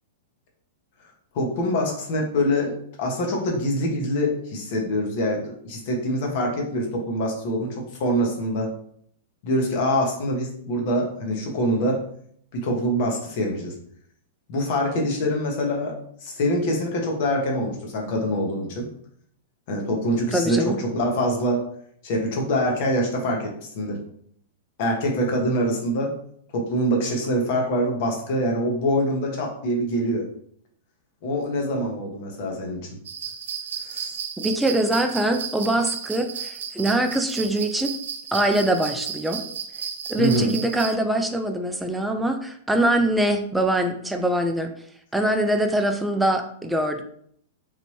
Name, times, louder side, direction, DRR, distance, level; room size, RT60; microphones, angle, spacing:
voice 1, 1.3-8.7 9.4-12.0 12.5-13.8 14.5-18.9 19.7-21.6 22.0-24.0 24.8-26.1 26.5-30.2 31.2-32.9 33.9-34.1 40.2-40.5, equal, 55° left, 0 dB, 1.1 m, -25 dB
voice 2, 20.3-20.8 34.4-37.9 38.3-39.4 40.1-44.7 45.1-47.0, right 1 dB, 5° right, 5 dB, 0.4 m, -23 dB
sound 1, 33.1-40.9, right 7 dB, 70° right, 0.5 m, -33 dB
3.2 x 2.5 x 3.2 m, 0.65 s
hypercardioid pair, 120°, 0 cm